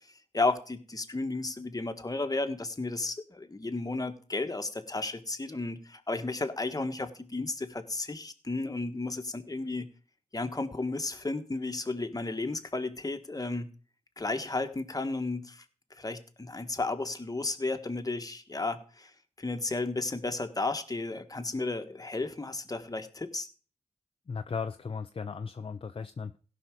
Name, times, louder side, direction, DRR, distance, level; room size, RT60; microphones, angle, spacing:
voice 1, 0.3-9.9 10.3-13.7 14.2-15.6 16.0-19.1 19.4-23.5, left 3 dB, 30° left, 8 dB, 1.4 m, -33 dB
voice 2, 24.3-26.4, left 5 dB, 45° left, 8 dB, 0.6 m, -36 dB
16.5 x 5.6 x 4.8 m, 0.39 s
cardioid pair, 55°, 12 cm